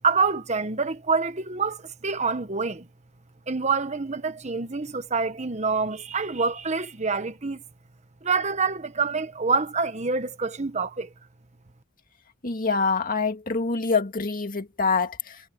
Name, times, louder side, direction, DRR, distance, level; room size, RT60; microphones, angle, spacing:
voice 1, 0.0-2.9 3.5-7.6 8.2-11.1, right 4 dB, 35° right, 1.2 m, -26 dB
voice 2, 12.4-15.3, left 4 dB, 40° left, 2.2 m, -25 dB
head